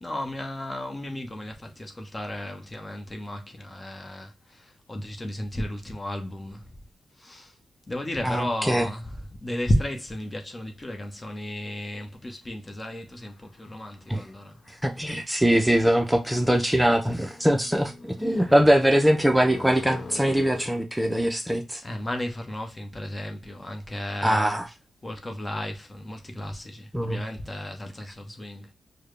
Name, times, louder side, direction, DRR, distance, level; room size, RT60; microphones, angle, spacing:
voice 1, 0.0-6.8 7.2-7.6 7.9-14.6 18.4-18.6 21.8-24.6 25.0-28.7, left 1 dB, 30° left, 1.0 m, -33 dB
voice 2, 8.2-8.9 14.1-14.2 14.7-21.8 24.2-24.7 26.9-27.2, equal, 10° right, 0.6 m, -22 dB
sound 1, 13.2-20.7, left 3 dB, 60° left, 1.1 m, -44 dB
4.7 x 2.2 x 3.2 m
supercardioid pair, 50°, 0 cm